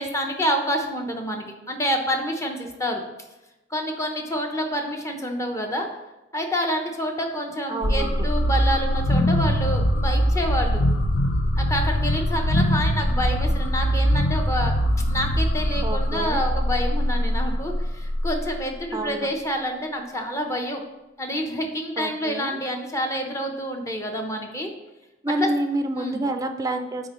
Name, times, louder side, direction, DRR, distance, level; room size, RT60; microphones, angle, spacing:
voice 1, 0.0-3.0 3.7-5.9 6.3-10.8 11.6-14.7 15.1-20.8 21.2-24.7 25.4-25.5 25.9-26.2, equal, 15° left, 3 dB, 0.7 m, -28 dB
voice 2, 7.7-8.3 15.8-16.4 18.9-19.3 22.0-22.6 25.2-27.1, right 1 dB, 20° right, 7 dB, 0.4 m, -28 dB
sound 1, 7.8-18.7, equal, 75° left, 0.8 m, -22 dB
9.1 x 3.7 x 3.0 m, 1.0 s
head